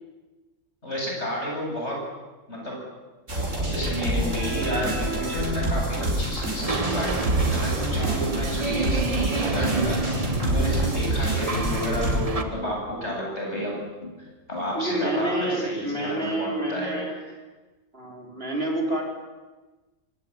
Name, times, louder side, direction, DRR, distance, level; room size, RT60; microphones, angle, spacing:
voice 1, 0.8-2.0 2.5-2.8 3.6-10.0 10.4-13.8 14.2-17.2, equal, 60° left, -1 dB, 8.5 m, -31 dB
sound 1, 3.3-12.2, right 1 dB, 75° right, 5.7 m, -27 dB
sound 2, 6.6-12.4, right 3 dB, 30° right, 1.4 m, -30 dB
sound 3, 7.5-15.1, left 3 dB, 45° left, 3.1 m, -39 dB
voice 2, 8.0-8.4 10.6-10.9 14.7-17.1 17.9-19.0, right 1 dB, 50° right, 1 dB, 4.8 m, -29 dB
24.5 x 18.5 x 9.9 m, 1.2 s
omnidirectional pair, 1.3 m